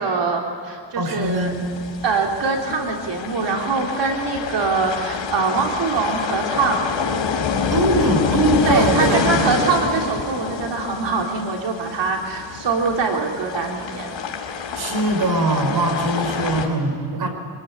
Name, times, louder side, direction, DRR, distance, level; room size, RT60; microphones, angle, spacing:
voice 1, 0.0-1.5 2.0-6.8 8.6-14.1, right 4 dB, 75° right, 1 dB, 3.5 m, -23 dB
voice 2, 0.9-1.7 7.7-9.5 14.7-17.3, right 2 dB, 55° right, 5 dB, 5.2 m, -21 dB
sound 1, 1.2-16.7, left 5 dB, 85° left, 3.9 m, -27 dB
25.5 x 19.0 x 9.7 m, 2.4 s
cardioid pair, 120°, 44 cm